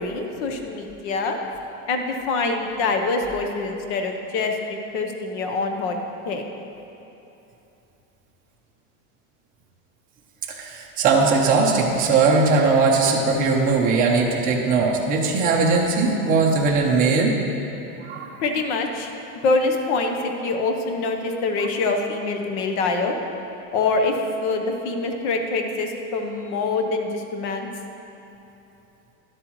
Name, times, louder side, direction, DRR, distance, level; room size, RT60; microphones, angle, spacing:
voice 1, 0.0-1.4 1.9-6.0 6.2-6.4 18.4-19.1 19.4-23.1 23.7-27.7, left 3 dB, 55° left, 4 dB, 1.0 m, -25 dB
voice 2, 10.5-17.4 18.0-18.3, right 4 dB, 20° right, -2 dB, 0.7 m, -19 dB
12.0 x 7.6 x 3.1 m, 2.9 s
supercardioid pair, 165°, 41 cm